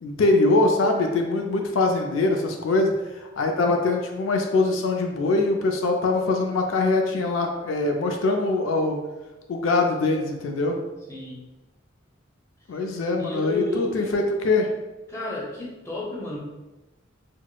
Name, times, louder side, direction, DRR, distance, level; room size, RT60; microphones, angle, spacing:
voice 1, 0.0-2.9 3.4-9.0 9.5-10.8 12.7-14.7, left 3 dB, 85° left, 3 dB, 0.4 m, -23 dB
voice 2, 11.1-11.4 13.2-14.1 15.1-16.4, left 2 dB, 15° left, -5 dB, 0.7 m, -32 dB
4.4 x 2.0 x 2.2 m, 1.1 s
head